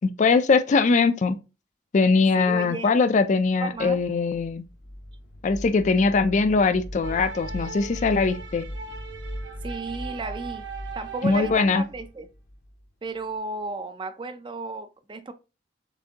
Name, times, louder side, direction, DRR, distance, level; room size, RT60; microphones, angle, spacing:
voice 1, 0.0-1.4 1.9-4.6 5.4-8.6 11.2-11.8, left 4 dB, 40° left, 0.4 m, -21 dB
voice 2, 2.4-2.9 3.6-4.0 9.6-10.7 10.9-12.3 13.0-15.3, right 3 dB, 25° right, 0.4 m, -34 dB
sound 1, 3.8-13.4, equal, 60° left, 0.7 m, -39 dB
sound 2, 7.0-11.8, right 6 dB, 75° right, 1.1 m, -39 dB
6.8 x 2.6 x 2.8 m
head